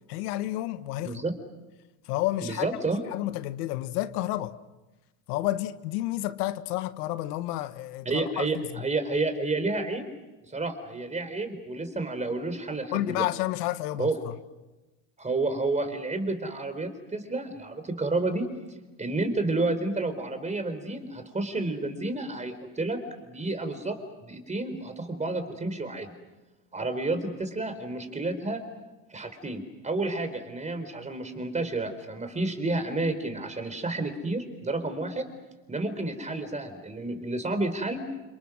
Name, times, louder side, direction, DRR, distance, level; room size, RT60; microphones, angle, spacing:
voice 1, 0.1-1.2 2.1-2.7 3.1-4.6 5.3-8.8 12.9-14.3, left 15 dB, 90° left, 1.4 m, -30 dB
voice 2, 2.4-3.0 8.0-10.0 10.5-13.3 14.0-14.2 15.2-18.5 19.0-26.1 26.7-28.6 29.1-35.2 35.7-38.0, right 2 dB, 15° right, 4.2 m, -30 dB
29.5 x 27.0 x 6.2 m
supercardioid pair, 120°, 45 cm